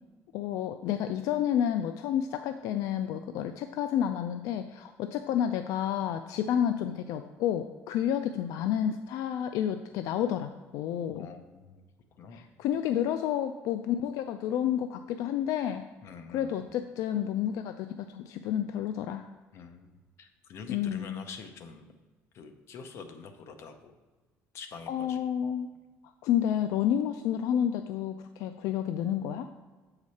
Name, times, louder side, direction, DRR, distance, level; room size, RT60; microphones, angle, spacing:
voice 1, 0.3-11.3 12.3-15.8 16.3-19.3 20.7-21.2 24.9-25.7 26.2-29.5, left 10 dB, 75° left, 8 dB, 0.3 m, -30 dB
voice 2, 11.1-11.8 12.1-12.4 16.0-16.7 19.5-21.9 22.3-23.9 24.5-25.2, left 5 dB, 50° left, 7 dB, 0.7 m, -46 dB
7.3 x 4.9 x 4.1 m, 1.3 s
cardioid pair, 155°, 6 cm